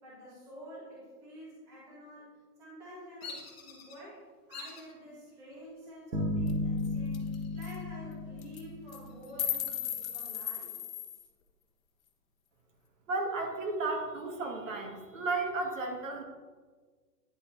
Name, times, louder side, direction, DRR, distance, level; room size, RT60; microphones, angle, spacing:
voice 1, 0.0-4.2 4.5-10.7, equal, 5° right, -9 dB, 1.0 m, -49 dB
Bird vocalization bird call bird song, 3.2-4.0 4.5-4.9 5.5-6.0 7.2-8.0 8.3-8.4 8.9-10.3, left 4 dB, 40° left, 1.5 m, -47 dB
sound 1, 6.1-9.5, left 2 dB, 80° right, 1.6 m, -34 dB
sound 2, 6.5-6.6 6.8-6.9 7.1-7.4 7.6-7.8 8.4-8.6 8.9-11.2, left 10 dB, 55° left, 1.0 m, -36 dB
voice 2, 13.1-16.2, right 3 dB, 50° right, 2 dB, 1.5 m, -33 dB
9.8 x 4.1 x 4.4 m, 1.5 s
hypercardioid pair, 175°, 48 cm